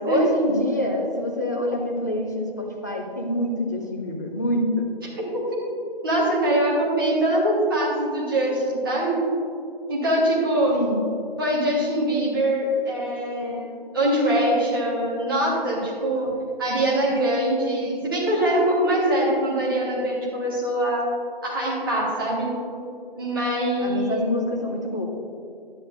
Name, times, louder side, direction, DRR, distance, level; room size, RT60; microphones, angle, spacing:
voice 1, 0.0-4.9 10.7-11.0 23.8-25.0, left 1 dB, 20° left, -2 dB, 0.6 m, -26 dB
voice 2, 6.0-9.2 9.9-10.8 11.4-16.3 16.6-21.1 21.4-22.5 23.1-24.2, right 1 dB, 20° right, -5 dB, 1.6 m, -23 dB
11.0 x 10.0 x 2.6 m, 2.5 s
figure-of-eight pair, 160°, 30 cm